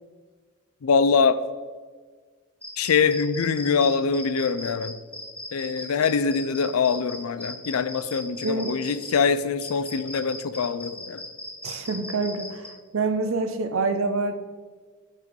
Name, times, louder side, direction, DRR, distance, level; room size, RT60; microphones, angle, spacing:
voice 1, 0.8-1.4 2.8-4.9 5.5-11.2, left 5 dB, 75° left, 14 dB, 0.4 m, -23 dB
sound 1, 2.6-9.1 9.6-12.7, left 1 dB, 5° left, 0.9 m, -38 dB
voice 2, 8.4-8.8 11.6-14.3, right 3 dB, 65° right, 9 dB, 0.6 m, -26 dB
6.8 x 6.0 x 4.6 m, 1.5 s
head